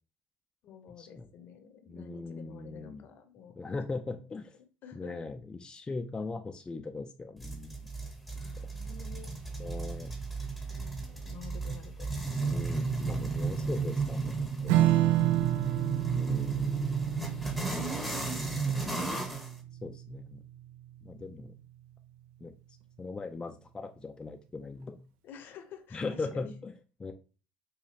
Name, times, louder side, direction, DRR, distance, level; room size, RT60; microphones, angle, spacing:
voice 1, 0.6-3.5 4.0-5.2 6.2-6.3 8.3-9.3 10.7-12.1 15.5-16.5 18.2-19.0 21.2-21.6 25.2-26.5, left 7 dB, 60° left, 7 dB, 0.8 m, -51 dB
voice 2, 1.9-3.0 3.6-4.6 4.9-7.9 9.6-10.1 12.5-14.7 16.1-17.1 19.0-19.3 19.8-20.4 21.0-21.5 22.4-22.5 23.0-25.0 25.9-26.7 27.0-27.1, left 3 dB, 20° left, 5 dB, 0.4 m, -39 dB
sound 1, 7.4-19.5, right 4 dB, 5° right, 0.9 m, -34 dB
Strum, 14.7-21.5, right 14 dB, 75° right, 0.5 m, -30 dB
4.9 x 2.3 x 2.9 m, 0.34 s
supercardioid pair, 90°, 4 cm